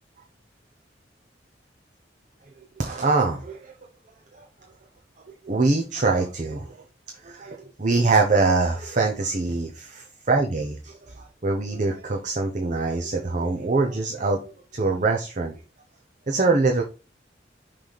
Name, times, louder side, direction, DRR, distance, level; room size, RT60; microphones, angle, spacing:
voice 1, 2.8-3.7 4.4-4.5 5.4-6.8 7.2-14.4 14.7-15.5 16.3-16.8, right 3 dB, 45° right, 2 dB, 0.8 m, -24 dB
6.1 x 3.4 x 5.2 m, 0.32 s
head